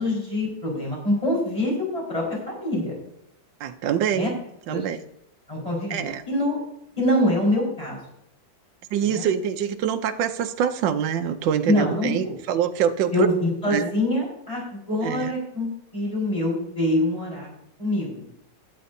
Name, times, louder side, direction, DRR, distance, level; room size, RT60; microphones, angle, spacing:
voice 1, 0.0-3.0 4.1-4.3 4.7-4.8 5.5-6.6 7.0-8.0 9.0-9.3 11.7-12.3 13.1-17.5 17.8-18.2, left 1 dB, 15° left, -3 dB, 4.7 m, -25 dB
voice 2, 3.6-4.4 4.7-5.0 5.9-6.2 8.9-13.3 13.7-13.9 15.0-15.3, right 8 dB, 75° right, 8 dB, 1.4 m, -25 dB
15.0 x 10.0 x 2.7 m, 0.79 s
omnidirectional pair, 2.1 m